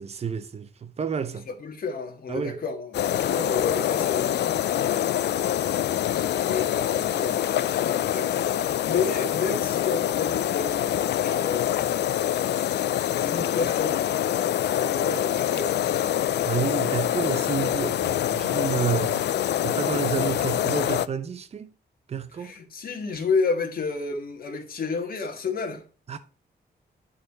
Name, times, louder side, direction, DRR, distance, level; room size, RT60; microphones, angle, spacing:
voice 1, 0.0-1.4 2.3-2.6 16.4-19.2 19.6-21.7 22.1-22.5 26.1-26.2, right 7 dB, 40° right, 0.7 m, -30 dB
voice 2, 1.3-5.3 6.1-12.0 12.8-14.1 14.5-16.3 22.3-25.8, left 4 dB, 60° left, 1.7 m, -31 dB
sound 1, 2.9-21.1, left 11 dB, 85° left, 0.4 m, -25 dB
10.5 x 4.2 x 4.2 m
wide cardioid pair, 180°, 17 cm